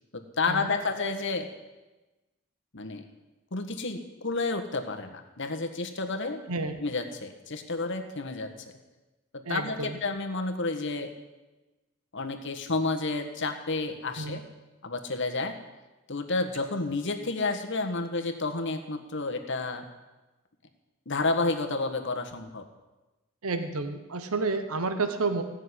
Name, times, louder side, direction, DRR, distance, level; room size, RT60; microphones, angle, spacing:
voice 1, 0.4-1.5 2.7-3.0 3.5-6.4 6.8-8.5 9.3-11.1 12.1-14.4 14.8-15.5 16.1-19.8 21.0-22.6, left 3 dB, 55° left, 5 dB, 1.6 m, -30 dB
voice 2, 6.5-6.8 9.4-10.0 14.2-14.4 23.4-25.4, right 3 dB, 85° right, 9 dB, 1.1 m, -30 dB
17.0 x 6.5 x 9.7 m, 1.1 s
head